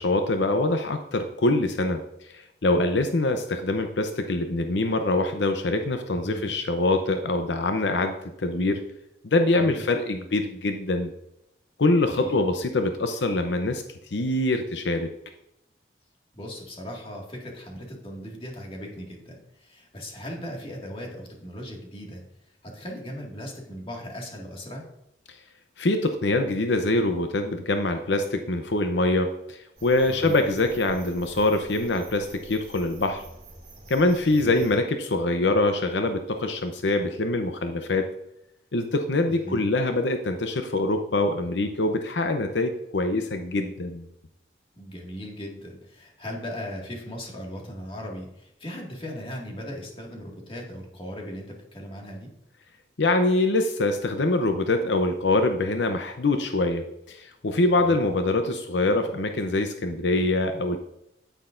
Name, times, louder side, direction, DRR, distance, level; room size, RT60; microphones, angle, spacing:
voice 1, 0.0-8.8 9.2-11.1 11.8-13.8 14.1-15.1 25.8-33.2 33.9-38.1 38.7-44.1 53.0-60.8, left 2 dB, 80° left, 6 dB, 0.7 m, -24 dB
voice 2, 6.1-6.5 9.6-9.9 12.2-12.4 16.3-22.2 22.6-24.9 30.1-30.4 34.3-34.7 39.3-39.6 44.8-52.3 57.7-58.1, equal, 30° left, -1 dB, 2.0 m, -38 dB
sound 1, 29.8-34.8, right 2 dB, 40° right, 2.5 m, -47 dB
9.8 x 9.1 x 2.6 m, 0.82 s
head